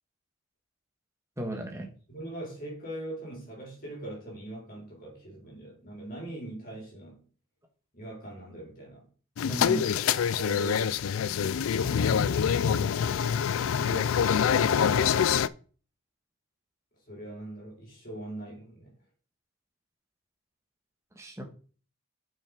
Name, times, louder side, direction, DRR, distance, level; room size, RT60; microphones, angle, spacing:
voice 1, 1.4-1.9 9.5-9.9 21.1-21.4, right 1 dB, 15° right, 1.5 m, -34 dB
voice 2, 2.1-7.2 7.9-9.1 9.7-13.2 13.8-15.2 17.1-19.0, right 1 dB, 40° left, 3.9 m, -42 dB
sound 1, 9.4-15.5, left 7 dB, 75° left, 0.4 m, -25 dB
6.8 x 6.0 x 5.0 m
head